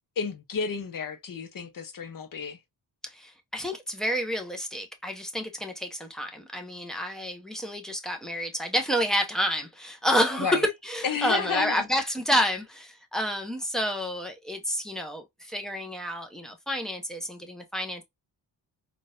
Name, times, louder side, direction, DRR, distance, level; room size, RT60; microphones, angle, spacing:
voice 1, 0.2-2.6 10.4-10.6 11.0-11.8, left 6 dB, 45° left, 0.9 m, -31 dB
voice 2, 3.0-18.0, equal, ahead, 0.8 m, -29 dB
3.8 x 2.5 x 2.5 m
cardioid pair, 100°, 45 cm